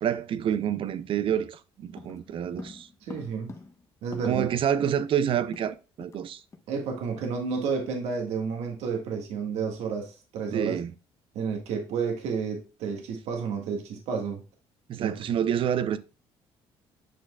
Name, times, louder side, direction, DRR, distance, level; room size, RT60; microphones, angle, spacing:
voice 1, 0.0-2.9 4.2-6.4 10.5-10.9 14.9-16.0, right 9 dB, 55° right, 0.6 m, -28 dB
sound 1, 2.0-4.6 4.9-5.0 5.2-6.3 6.5-6.7 7.1-7.3, left 4 dB, 30° left, 0.8 m, -46 dB
voice 2, 3.0-3.5 4.0-4.4 6.7-10.7 11.3-14.4 14.9-15.1, right 5 dB, 80° right, 1.6 m, -31 dB
8.3 x 6.2 x 2.2 m
cardioid pair, 105°, 11 cm